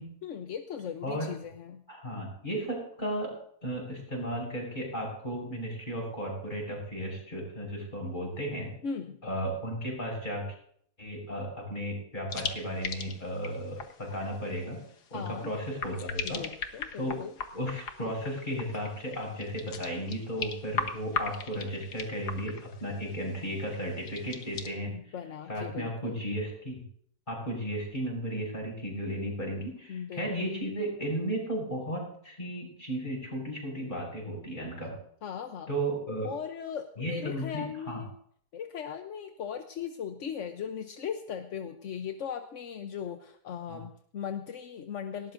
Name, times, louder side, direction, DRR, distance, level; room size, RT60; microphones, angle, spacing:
voice 1, 0.2-1.8 8.8-9.2 15.1-15.5 16.2-17.3 24.9-26.2 29.9-30.6 35.2-35.7 36.2-38.1 38.5-45.3, left 7 dB, 55° left, 6 dB, 1.0 m, -38 dB
voice 2, 1.9-3.3 3.6-8.7 9.2-10.5 11.0-14.8 15.1-16.5 17.0-17.2 17.5-25.2 25.5-26.8 27.3-35.0 35.7-36.3 37.0-38.0 43.7-43.8, equal, 25° left, -1 dB, 7.4 m, -34 dB
sound 1, 12.3-24.7, left 5 dB, 70° left, 1.8 m, -39 dB
19.5 x 18.0 x 2.6 m, 0.63 s
omnidirectional pair, 1.8 m